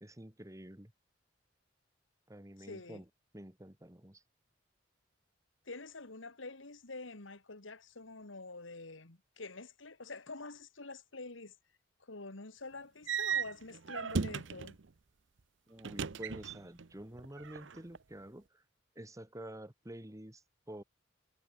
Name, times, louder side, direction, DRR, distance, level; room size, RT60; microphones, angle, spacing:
voice 1, 0.0-0.9 2.3-3.1 3.3-4.2 15.7-18.6 19.0-20.4 20.7-20.8, right 1 dB, 15° right, 2.1 m, -49 dB
voice 2, 2.6-3.0 5.7-11.6 12.0-14.8, left 3 dB, 80° left, 2.2 m, -47 dB
sound 1, 13.1-14.8 15.8-16.9 17.1-18.0, right 6 dB, 65° right, 0.7 m, -36 dB
head